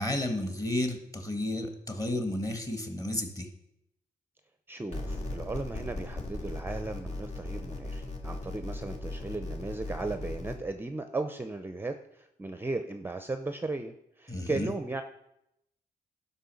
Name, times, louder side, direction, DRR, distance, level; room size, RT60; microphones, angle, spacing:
voice 1, 0.0-3.5 14.3-14.7, left 1 dB, 20° left, 5 dB, 1.7 m, -32 dB
voice 2, 4.7-15.0, right 2 dB, 15° right, 8 dB, 0.6 m, -36 dB
sound 1, 4.9-10.6, left 2 dB, 45° left, 2.2 m, -37 dB
11.5 x 5.5 x 7.0 m, 0.83 s
cardioid pair, 115°, 15 cm